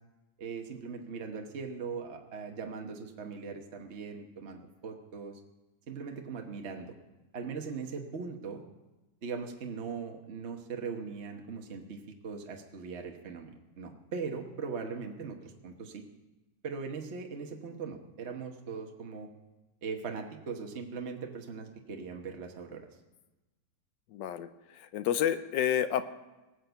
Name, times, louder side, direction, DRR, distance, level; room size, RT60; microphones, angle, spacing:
voice 1, 0.4-5.4 5.9-6.9 7.3-8.6 9.2-16.0 16.6-19.3 19.8-22.9, right 5 dB, 45° right, 3 dB, 1.2 m, -40 dB
voice 2, 24.1-24.5 24.9-26.0, left 10 dB, 90° left, 12 dB, 1.4 m, -29 dB
19.0 x 6.6 x 8.0 m, 1.1 s
omnidirectional pair, 1.9 m